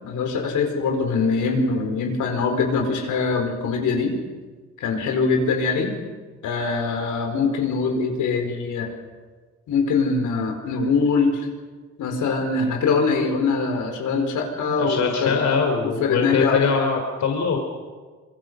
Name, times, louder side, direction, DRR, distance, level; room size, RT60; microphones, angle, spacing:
voice 1, 0.0-4.1 4.8-5.9 6.4-8.9 9.7-11.5 12.0-15.4 15.8-16.6, left 4 dB, 80° left, 4 dB, 5.0 m, -23 dB
voice 2, 14.7-17.6, left 5 dB, 65° left, 2 dB, 3.9 m, -22 dB
25.5 x 23.0 x 6.5 m, 1.4 s
cardioid pair, 90°, 30 cm